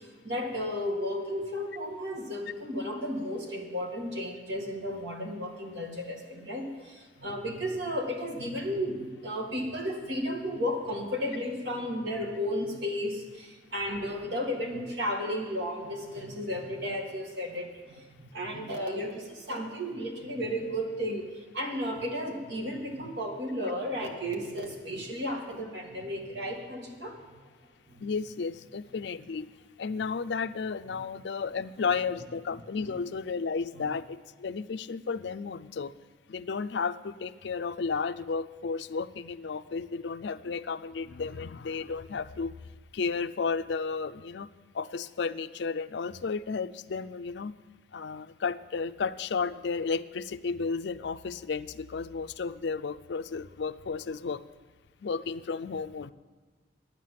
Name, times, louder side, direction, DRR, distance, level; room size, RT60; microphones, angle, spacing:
voice 1, 0.2-21.3 21.5-27.1 27.9-28.0, equal, 70° right, 1 dB, 2.1 m, -33 dB
voice 2, 28.0-29.5 29.8-35.9 36.3-42.6 42.9-44.5 44.7-47.5 47.9-54.4 55.0-56.1, left 5 dB, 70° left, 11 dB, 0.4 m, -33 dB
11.5 x 9.3 x 7.4 m, 1.4 s
head